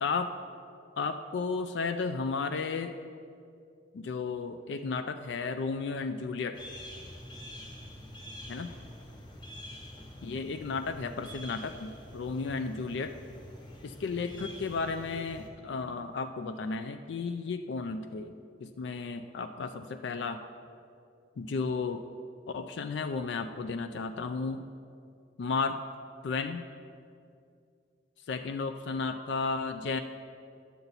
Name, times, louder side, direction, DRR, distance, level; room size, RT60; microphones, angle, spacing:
voice 1, 0.0-0.3 1.0-2.9 3.9-6.6 8.5-8.8 10.2-13.2 13.8-18.3 18.6-20.4 21.4-22.0 22.5-24.7 25.4-25.8 26.2-26.7 28.3-30.0, left 4 dB, 65° left, 8 dB, 0.4 m, -33 dB
sound 1, 6.5-15.5, equal, 25° left, 1.0 m, -46 dB
10.5 x 6.8 x 4.0 m, 2.4 s
head